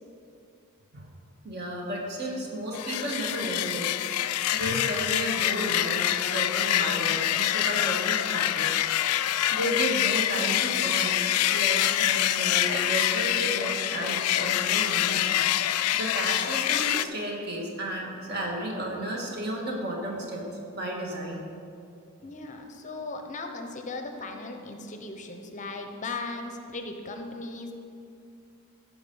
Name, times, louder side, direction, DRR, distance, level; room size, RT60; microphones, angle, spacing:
voice 1, 1.4-8.7 9.5-11.1 11.5-15.3 15.9-20.4 20.7-21.4, right 1 dB, 45° right, -1 dB, 1.7 m, -33 dB
sound 1, 2.7-17.0, left 12 dB, 85° left, 0.4 m, -26 dB
voice 2, 22.2-27.7, left 3 dB, 35° left, 5 dB, 0.6 m, -37 dB
14.0 x 5.0 x 5.4 m, 2.5 s
head